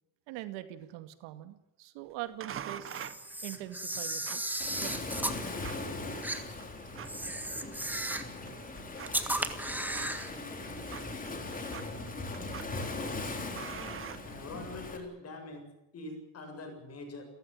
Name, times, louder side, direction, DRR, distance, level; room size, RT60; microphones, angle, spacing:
voice 1, 0.3-2.9 3.4-5.2 10.3-10.4, right 14 dB, 75° right, 10 dB, 2.3 m, -43 dB
sound 1, 2.4-14.9, right 9 dB, 30° right, 1.1 m, -48 dB
Camera, 2.8-5.4 6.2-6.4 7.0-8.3 9.1-10.3, right 1 dB, 5° right, 1.8 m, -35 dB
Waves surf, 4.6-15.0, left 3 dB, 20° left, 3.8 m, -40 dB
voice 2, 13.6-14.0 14.2-15.6 15.9-17.3, left 2 dB, 35° left, 5 dB, 7.5 m, -44 dB
30.0 x 15.0 x 9.0 m, 0.92 s
cardioid pair, 150°, 44 cm